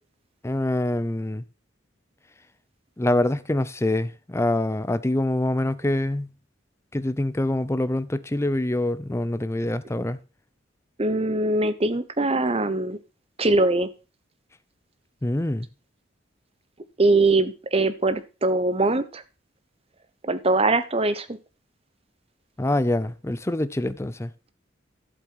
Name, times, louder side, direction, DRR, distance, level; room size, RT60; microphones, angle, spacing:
voice 1, 0.4-1.4 3.0-6.3 6.9-10.2 15.2-15.7 22.6-24.3, left 1 dB, 15° left, 0.6 m, -25 dB
voice 2, 11.0-13.0 13.4-13.9 17.0-19.2 20.3-21.3, right 2 dB, 30° right, 1.0 m, -22 dB
11.5 x 7.7 x 4.7 m
head